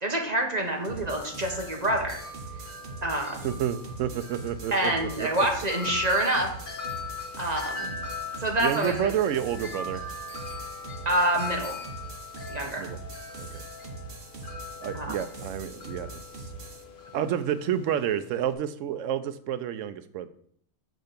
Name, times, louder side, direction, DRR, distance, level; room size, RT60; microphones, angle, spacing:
voice 1, 0.0-2.2 3.0-3.4 4.7-6.5 7.4-8.0 8.4-9.1 11.0-11.7 12.5-12.8 14.9-15.1, right 1 dB, 30° right, 1 dB, 1.4 m, -27 dB
Wind chime, 0.6-18.5, left 4 dB, 45° left, 1.1 m, -41 dB
sound 1, 0.8-16.8, right 3 dB, 50° right, 1.1 m, -42 dB
voice 2, 3.4-5.5 8.6-10.0 12.8-13.0 13.4-13.6 14.8-16.2 17.1-20.3, right 9 dB, 75° right, 12 dB, 0.9 m, -30 dB
6.5 x 5.7 x 5.1 m, 0.63 s
omnidirectional pair, 1.4 m